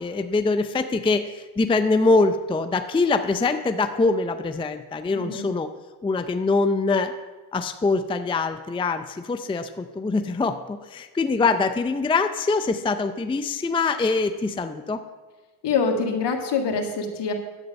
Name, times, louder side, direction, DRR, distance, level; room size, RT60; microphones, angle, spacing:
voice 1, 0.0-5.7 6.0-7.1 7.5-15.0, left 3 dB, 10° left, 9 dB, 0.5 m, -23 dB
voice 2, 5.1-5.5 15.6-17.3, left 5 dB, 60° left, 4 dB, 2.0 m, -25 dB
11.0 x 7.9 x 5.3 m, 1.3 s
supercardioid pair, 75°, 47 cm